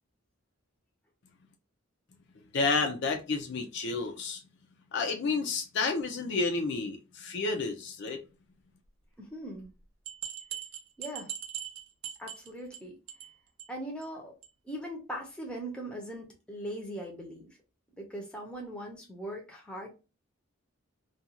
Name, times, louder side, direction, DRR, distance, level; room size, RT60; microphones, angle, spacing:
voice 1, 2.5-4.4 4.9-8.2, left 3 dB, 55° left, 0.4 m, -30 dB
voice 2, 9.2-9.7 11.0-11.3 12.2-13.0 13.7-14.3 14.6-17.5 18.0-20.0, right 1 dB, 5° left, 0.6 m, -40 dB
sound 1, 9.6-9.7 10.1-12.8 13.1-13.3 13.6-13.7 14.0-14.1 14.4-14.5, right 9 dB, 75° right, 0.5 m, -40 dB
2.5 x 2.2 x 2.8 m
head